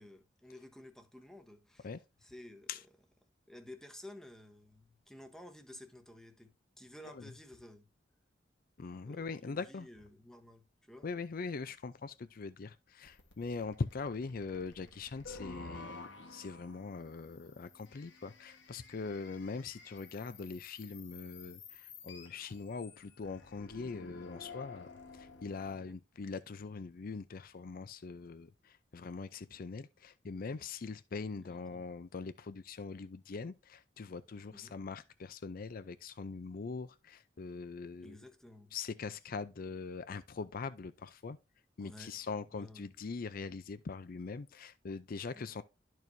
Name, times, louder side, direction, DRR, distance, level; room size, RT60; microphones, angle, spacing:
voice 1, 0.0-1.9 2.2-2.7 3.5-7.9 9.0-11.1 25.7-26.0 31.3-31.8 34.5-34.8 38.0-38.7 41.8-42.2 42.5-42.9 45.3-45.6, left 1 dB, 5° left, 1.0 m, -53 dB
voice 2, 8.8-9.9 11.0-38.2 38.7-41.4 41.8-45.6, left 4 dB, 50° left, 0.5 m, -42 dB
sound 1, 13.1-25.7, left 3 dB, 85° left, 1.4 m, -52 dB
12.5 x 4.6 x 2.6 m
head